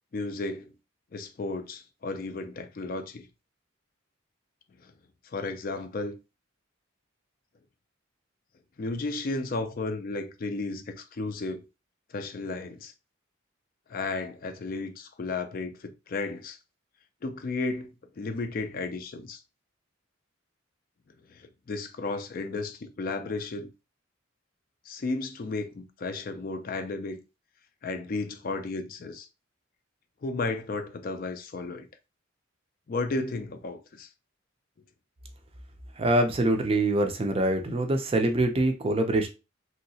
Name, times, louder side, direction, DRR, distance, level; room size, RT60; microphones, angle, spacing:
voice 1, 0.1-0.7 1.1-3.3 4.8-4.9 5.3-6.2 8.8-11.6 12.1-12.9 13.9-16.6 17.2-19.4 21.3-23.7 24.9-27.2 27.8-29.3 30.2-31.9 32.9-34.1, left 3 dB, 45° left, 0.4 m, -33 dB
voice 2, 36.0-39.3, right 1 dB, 25° right, 0.4 m, -24 dB
3.1 x 2.8 x 2.7 m
head